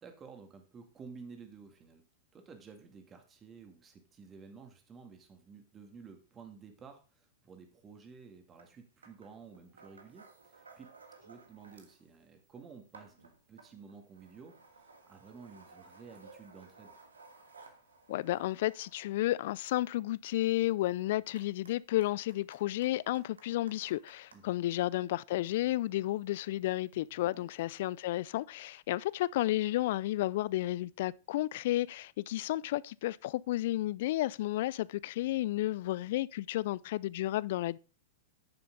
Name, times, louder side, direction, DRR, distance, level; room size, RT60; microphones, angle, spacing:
voice 1, 0.0-2.0 2.3-10.9 11.2-17.0 24.3-24.5 27.2-27.5, right 5 dB, 25° right, 2.1 m, -53 dB
sound 1, 8.6-8.7 9.0-12.0 12.4-24.4 25.2-28.0, right 4 dB, 85° right, 1.5 m, -59 dB
voice 2, 18.1-37.8, left 15 dB, 60° left, 0.3 m, -32 dB
9.8 x 6.8 x 3.9 m
hypercardioid pair, 105°, 0 cm